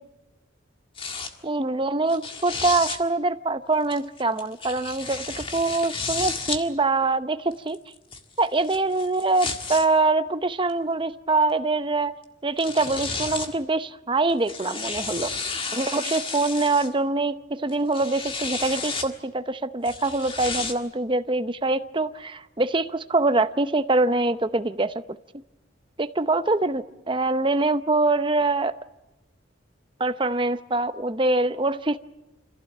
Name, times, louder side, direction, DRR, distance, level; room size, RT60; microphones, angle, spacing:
sound 1, 1.0-1.3 2.1-3.0 3.9-6.6 7.5-9.9 10.7-10.8 12.2-12.3 12.6-13.5 14.3-16.9 17.7-19.1 19.8-20.7, left 4 dB, 30° left, 1.8 m, -32 dB
voice 1, 1.4-7.8 8.4-12.1 12.4-15.3 15.7-24.9 26.0-28.7 30.0-32.0, right 2 dB, 25° right, 12 dB, 0.8 m, -24 dB
26.0 x 15.5 x 8.5 m, 1.0 s
head